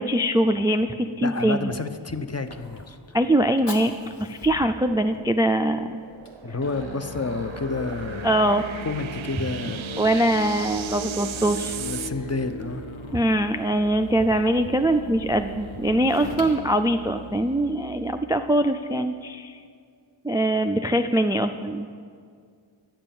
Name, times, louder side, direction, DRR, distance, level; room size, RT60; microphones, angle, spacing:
voice 1, 0.0-1.7 3.1-3.9 4.2-6.0 8.2-8.6 10.0-11.8 13.1-19.6 20.2-21.9, right 1 dB, 10° right, 7 dB, 0.3 m, -22 dB
voice 2, 1.2-3.0 6.4-9.8 11.4-12.8, left 3 dB, 35° left, 9 dB, 0.6 m, -30 dB
Fire, 1.6-17.8, left 1 dB, 55° left, 1.5 m, -46 dB
sound 1, 4.8-12.1, right 9 dB, 75° right, 0.5 m, -39 dB
Musical instrument, 6.6-18.2, equal, 70° left, 1.0 m, -38 dB
10.5 x 7.4 x 6.9 m, 2.2 s
wide cardioid pair, 45°, 49 cm